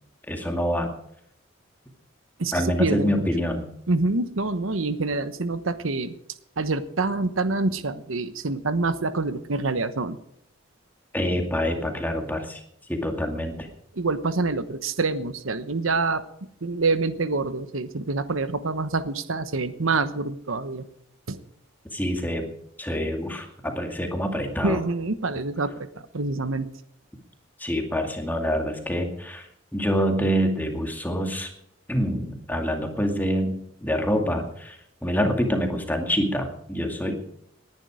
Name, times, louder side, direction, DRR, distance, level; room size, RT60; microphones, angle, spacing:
voice 1, 0.3-0.9 2.5-3.6 11.1-12.6 12.9-13.7 21.9-22.5 22.8-24.8 27.6-31.5 31.9-37.1, equal, 10° left, 3 dB, 2.2 m, -26 dB
voice 2, 2.4-3.2 3.9-6.1 6.6-10.2 13.9-20.9 21.3-21.4 24.6-25.9 26.1-26.7, right 3 dB, 85° right, 12 dB, 1.1 m, -26 dB
19.5 x 10.5 x 5.0 m, 0.73 s
head